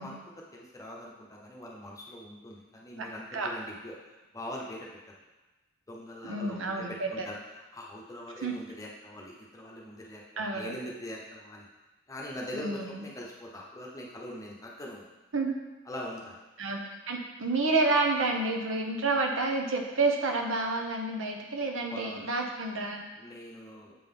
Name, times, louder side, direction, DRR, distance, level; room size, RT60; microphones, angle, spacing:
voice 1, 0.0-5.2 5.9-7.4 7.7-11.7 12.1-15.1 15.9-16.4 21.9-22.3 23.2-24.0, left 1 dB, 15° left, -3 dB, 0.9 m, -42 dB
voice 2, 6.3-7.3 8.4-8.6 10.4-10.7 12.5-13.0 15.3-15.6 16.6-16.8 17.1-23.0, right 3 dB, 80° right, 2 dB, 0.8 m, -29 dB
7.5 x 3.8 x 3.8 m, 1.1 s
head